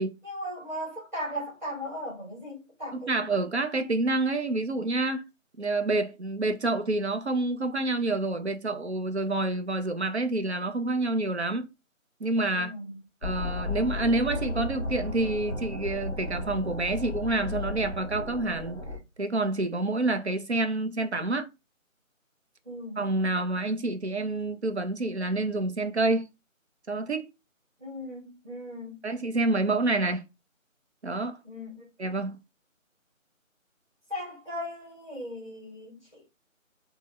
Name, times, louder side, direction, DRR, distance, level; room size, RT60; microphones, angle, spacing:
voice 1, 0.2-3.2 12.5-13.0 22.6-23.0 27.8-28.9 31.4-31.8 34.1-36.3, equal, 35° right, 1.3 m, -37 dB
voice 2, 2.9-5.2 5.6-11.7 12.2-12.7 13.2-18.8 19.2-21.5 23.0-26.3 26.9-27.3 29.0-30.2 31.0-31.4 32.0-32.4, right 2 dB, 55° right, 0.5 m, -28 dB
sound 1, 13.2-19.0, left 2 dB, 25° left, 1.1 m, -34 dB
3.6 x 2.0 x 2.3 m
figure-of-eight pair, 170°, 40 cm